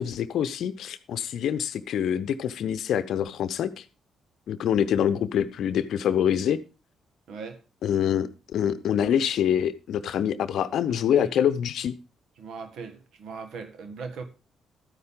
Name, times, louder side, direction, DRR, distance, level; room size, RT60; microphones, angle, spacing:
voice 1, 0.0-3.8 4.5-6.6 7.8-11.9, left 9 dB, 65° left, 0.8 m, -25 dB
voice 2, 7.3-7.6 10.9-11.3 12.4-14.2, right 5 dB, 65° right, 1.6 m, -39 dB
13.0 x 9.6 x 3.7 m
hypercardioid pair, 40°, 0 cm